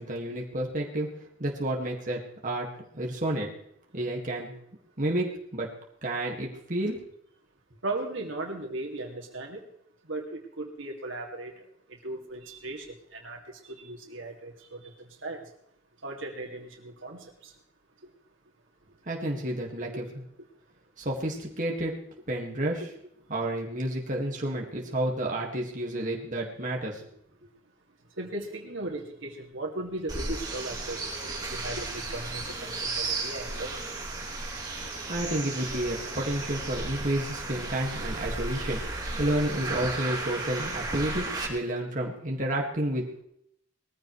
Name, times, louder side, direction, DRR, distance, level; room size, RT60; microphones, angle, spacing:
voice 1, 0.0-2.7 2.9-3.5 3.9-4.5 5.0-5.7 6.0-7.0 19.1-20.0 21.0-22.0 22.3-22.9 23.3-27.1 34.8-43.2, right 1 dB, 40° right, -1 dB, 1.9 m, -30 dB
voice 2, 7.8-9.6 10.1-12.9 13.1-15.4 16.0-17.5 28.2-31.1 31.5-33.8, right 2 dB, 75° right, 1 dB, 2.4 m, -37 dB
sound 1, 30.1-41.5, right 3 dB, 20° right, 3.1 m, -34 dB
20.5 x 14.5 x 3.2 m, 0.72 s
head